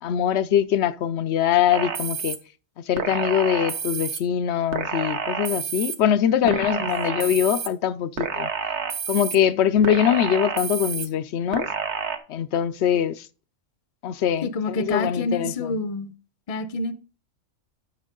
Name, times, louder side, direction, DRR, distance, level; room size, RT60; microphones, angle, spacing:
voice 1, 0.0-2.4 2.8-8.5 9.1-11.7 12.3-13.3 14.0-15.8, left 9 dB, 65° left, 0.9 m, -23 dB
sound 1, 1.7-2.4 3.0-4.2 4.7-6.0 6.5-7.7 8.2-9.4 9.8-11.1 11.5-12.2, right 6 dB, 65° right, 1.3 m, -29 dB
voice 2, 6.4-6.9 14.4-16.1 16.5-16.9, left 3 dB, 35° left, 0.7 m, -28 dB
11.5 x 6.1 x 3.8 m
omnidirectional pair, 1.3 m